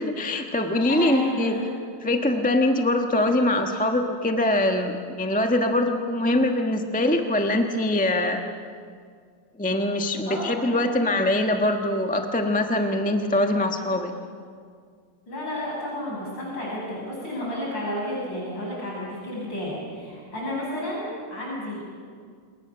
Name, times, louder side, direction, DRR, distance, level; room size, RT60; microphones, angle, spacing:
voice 1, 0.0-1.6 2.0-8.4 9.6-14.1, left 1 dB, 5° left, 4 dB, 1.0 m, -23 dB
voice 2, 0.9-1.7 10.3-10.9 13.8-14.0 15.3-21.8, left 1 dB, 85° left, -5 dB, 7.5 m, -32 dB
27.5 x 21.5 x 6.9 m, 2.1 s
omnidirectional pair, 2.0 m